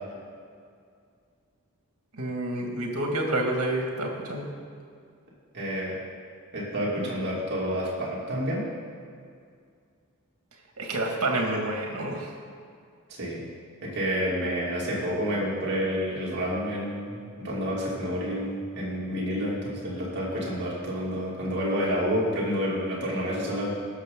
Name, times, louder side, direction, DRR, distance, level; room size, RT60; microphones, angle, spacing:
voice 1, 2.1-4.5 10.8-12.3, right 1 dB, 75° right, 0 dB, 2.1 m, -28 dB
voice 2, 5.5-5.9 6.5-8.6 13.1-13.4 13.8-23.7, equal, 50° right, -5 dB, 2.8 m, -29 dB
18.5 x 6.7 x 3.9 m, 2.3 s
head